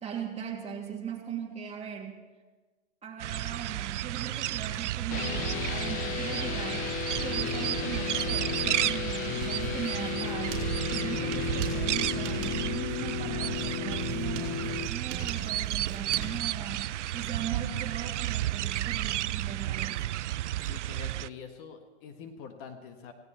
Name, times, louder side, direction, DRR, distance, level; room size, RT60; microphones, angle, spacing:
voice 1, 0.0-2.1 3.0-20.0, right 8 dB, 15° right, -1 dB, 3.0 m, -39 dB
sound 1, 3.2-21.3, right 14 dB, 75° right, 0.5 m, -32 dB
sound 2, 5.1-14.9, left 10 dB, 25° left, 0.5 m, -34 dB
Writing, 9.4-18.1, right 7 dB, 40° right, 5.1 m, -43 dB
voice 2, 20.6-23.1, left 6 dB, 40° left, 5 dB, 1.6 m, -45 dB
17.5 x 17.5 x 4.4 m, 1.3 s
hypercardioid pair, 125°, 36 cm